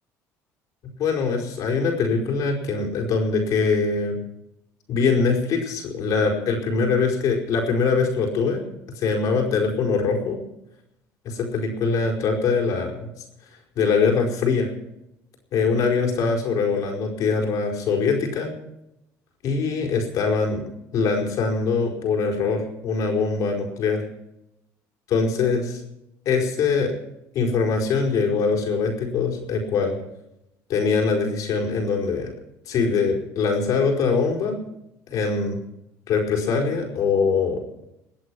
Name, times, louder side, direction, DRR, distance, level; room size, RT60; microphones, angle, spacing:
voice 1, 1.0-4.2 4.9-8.6 8.9-10.4 11.2-13.1 13.8-14.7 15.5-18.5 19.4-20.6 20.9-24.0 25.1-25.8 26.2-26.9 27.3-29.9 30.7-32.3 32.7-34.6 35.1-35.6 36.1-37.6, left 4 dB, 65° left, 0 dB, 4.7 m, -23 dB
21.5 x 8.2 x 6.2 m, 0.84 s
cardioid pair, 100°, 7 cm